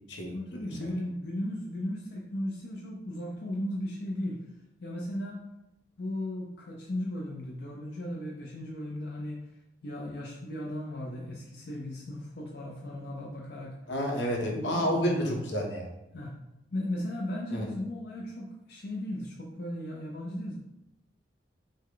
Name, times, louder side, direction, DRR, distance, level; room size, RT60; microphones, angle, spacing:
voice 1, 0.3-4.4 4.8-5.4 6.0-9.4 9.8-13.7 14.5-15.4 16.1-16.3 16.7-20.5, left 1 dB, 65° left, -2 dB, 0.6 m, -36 dB
voice 2, 13.9-15.9 17.5-17.7, equal, 85° left, -1 dB, 1.1 m, -30 dB
6.3 x 2.2 x 3.8 m, 0.89 s
head